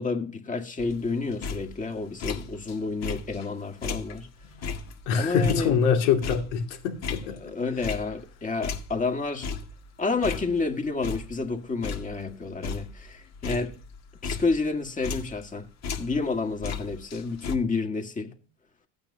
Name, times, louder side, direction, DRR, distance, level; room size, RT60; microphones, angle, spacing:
voice 1, 0.0-4.3 5.1-5.7 7.4-9.5 10.0-13.7 14.2-15.6 16.0-18.3, left 4 dB, 20° left, 1.9 m, -30 dB
sound 1, 0.8-2.7 3.0-8.3 8.6-10.7 11.0-11.5 11.8-15.5 15.8-17.6, left 5 dB, 45° left, 1.9 m, -36 dB
voice 2, 5.1-7.5, left 6 dB, 80° left, 2.6 m, -24 dB
15.0 x 9.0 x 2.8 m
supercardioid pair, 100°, 36 cm